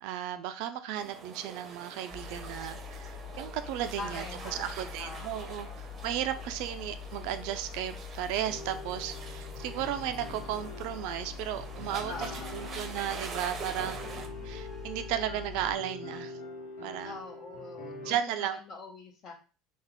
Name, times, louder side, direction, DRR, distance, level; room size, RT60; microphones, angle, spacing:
voice 1, 0.0-4.2 4.5-16.3 16.8-17.1 18.0-18.6, right 11 dB, 60° right, 0.4 m, -35 dB
sound 1, 1.0-14.3, right 4 dB, 35° right, 0.7 m, -45 dB
sound 2, 2.1-15.7, left 7 dB, 15° left, 1.4 m, -44 dB
voice 2, 4.0-4.7 5.0-5.8 12.1-12.9 17.0-19.3, left 3 dB, 45° left, 1.2 m, -44 dB
sound 3, 8.4-18.2, left 2 dB, 65° left, 1.2 m, -45 dB
3.3 x 2.3 x 3.6 m
hypercardioid pair, 70°, 0 cm